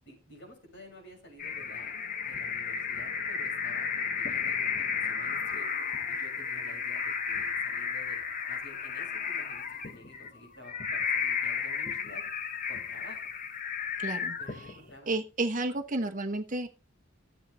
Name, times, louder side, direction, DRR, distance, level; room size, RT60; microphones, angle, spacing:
voice 1, 0.0-2.0 2.3-5.7 6.1-12.2 12.7-13.2 14.4-15.1, left 1 dB, 55° left, 0 dB, 6.7 m, -51 dB
sound 1, 1.4-14.9, left 6 dB, 40° left, 0.9 m, -33 dB
voice 2, 14.0-14.4 15.1-16.7, right 2 dB, 35° right, 4 dB, 1.0 m, -31 dB
14.5 x 8.2 x 4.2 m, 0.33 s
head